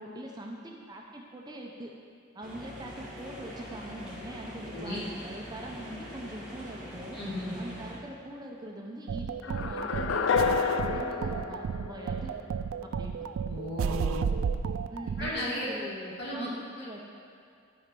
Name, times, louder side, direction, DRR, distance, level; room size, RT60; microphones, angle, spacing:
voice 1, 0.0-1.9 2.3-7.2 7.6-12.4 12.8-13.1 14.9-17.0, right 1 dB, 20° right, 0 dB, 0.6 m, -42 dB
sound 1, 2.4-7.9, equal, 5° right, 1.8 m, -44 dB
voice 2, 4.6-5.0 7.1-7.6 13.5-14.3 15.2-15.7 16.2-16.5 16.8-16.9, left 1 dB, 55° left, -6 dB, 2.3 m, -35 dB
sound 2, 9.1-15.3, right 6 dB, 85° right, 0.3 m, -32 dB
sound 3, 9.4-12.5, left 5 dB, 70° left, 0.5 m, -29 dB
12.5 x 4.3 x 5.3 m, 2.4 s
head